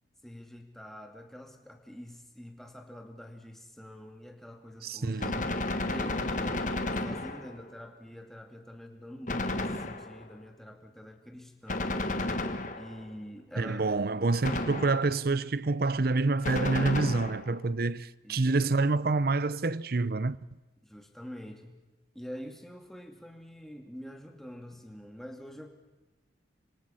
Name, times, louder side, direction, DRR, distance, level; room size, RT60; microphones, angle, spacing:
voice 1, 0.2-5.3 5.9-12.2 12.8-14.2 18.2-18.5 20.8-21.8 22.1-25.7, equal, ahead, 2.4 m, -46 dB
voice 2, 4.8-5.4 13.6-20.4, right 3 dB, 55° right, 0.7 m, -27 dB
Gunshot gunfire, 5.2-7.7 9.3-10.3 11.7-13.1 14.4-15.2 16.4-17.6, left 2 dB, 45° left, 1.6 m, -32 dB
27.0 x 24.0 x 5.7 m
head